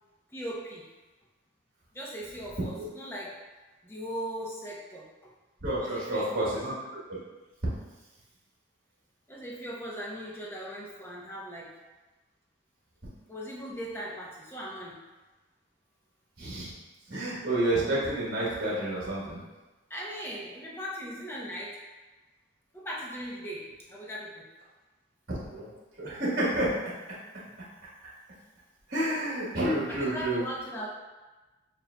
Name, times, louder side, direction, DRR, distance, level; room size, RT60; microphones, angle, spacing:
voice 1, 0.3-0.9 1.9-3.4 3.8-5.3 5.8-6.6 9.3-11.7 13.3-15.0 19.9-21.8 22.7-24.5 29.9-30.9, equal, 10° left, -5 dB, 0.7 m, -39 dB
voice 2, 5.6-6.7 7.1-7.2 16.4-16.7 17.1-19.4 25.5-25.7 26.0-26.7 28.9-30.4, right 1 dB, 50° right, -7 dB, 1.2 m, -29 dB
7.4 x 2.6 x 2.2 m, 1.2 s
head